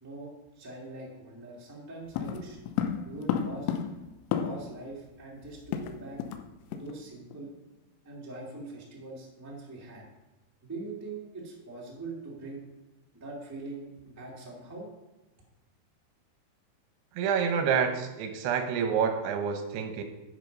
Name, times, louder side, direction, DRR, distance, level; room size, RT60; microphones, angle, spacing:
voice 1, 0.0-2.6 3.0-3.8 4.4-6.2 6.7-7.5 8.0-10.0 10.6-12.7 13.1-14.9, right 2 dB, 10° right, -3 dB, 1.0 m, -42 dB
sound 1, 2.1-4.8 5.1-5.2 5.4-6.4 6.7-6.9 7.3-7.5, left 8 dB, 90° left, 2.8 m, -32 dB
voice 2, 17.2-20.0, right 7 dB, 85° right, 6 dB, 3.0 m, -28 dB
11.0 x 6.3 x 5.3 m, 1.1 s
omnidirectional pair, 4.7 m